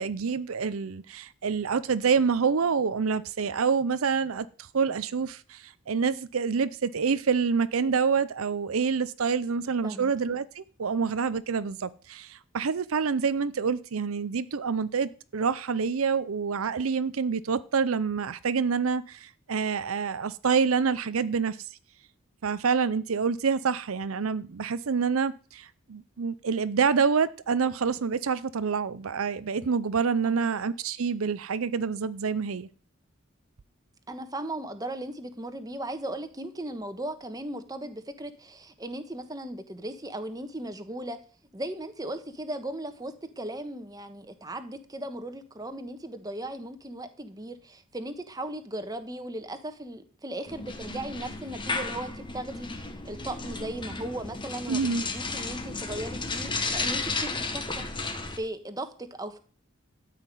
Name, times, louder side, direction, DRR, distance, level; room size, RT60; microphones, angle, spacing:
voice 1, 0.0-21.6 22.4-32.7 54.7-55.0, right 5 dB, 85° right, 0.6 m, -27 dB
voice 2, 34.1-41.2 41.5-59.4, right 1 dB, 20° right, 1.3 m, -37 dB
sound 1, 50.5-58.4, left 3 dB, 25° left, 1.5 m, -33 dB
13.0 x 5.8 x 9.1 m
head